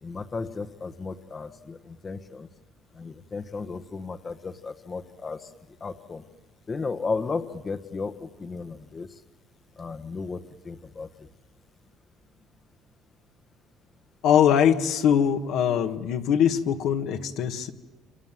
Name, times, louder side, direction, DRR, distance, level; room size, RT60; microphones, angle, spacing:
voice 1, 0.0-2.5 2.9-5.5 5.8-6.2 6.7-9.2 9.8-11.3, left 4 dB, 30° left, 8 dB, 1.2 m, -34 dB
voice 2, 14.2-17.7, left 8 dB, 70° left, 6 dB, 1.7 m, -22 dB
27.5 x 26.5 x 7.6 m, 1.1 s
cardioid pair, 110°, 0 cm